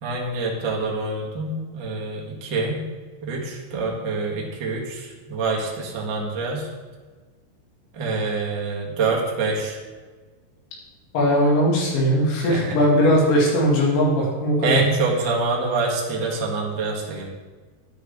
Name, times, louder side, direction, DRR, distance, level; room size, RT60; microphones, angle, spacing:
voice 1, 0.0-2.8 3.2-6.7 7.9-9.8 12.5-12.8 14.6-17.3, right 3 dB, 50° right, -3 dB, 1.4 m, -26 dB
voice 2, 11.1-14.8, equal, 75° left, -3 dB, 4.7 m, -19 dB
13.0 x 10.0 x 3.8 m, 1.4 s
omnidirectional pair, 5.4 m